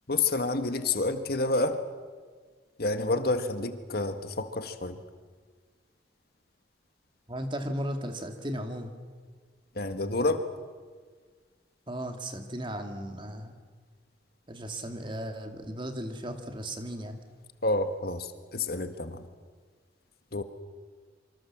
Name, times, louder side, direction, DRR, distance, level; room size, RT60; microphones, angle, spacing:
voice 1, 0.1-1.8 2.8-5.0 9.7-10.4 17.6-19.3 20.3-20.4, left 2 dB, 55° left, 8 dB, 1.7 m, -29 dB
voice 2, 7.3-8.9 11.9-13.5 14.5-17.2, equal, 25° right, 6 dB, 2.3 m, -36 dB
26.5 x 25.0 x 7.4 m, 1.5 s
head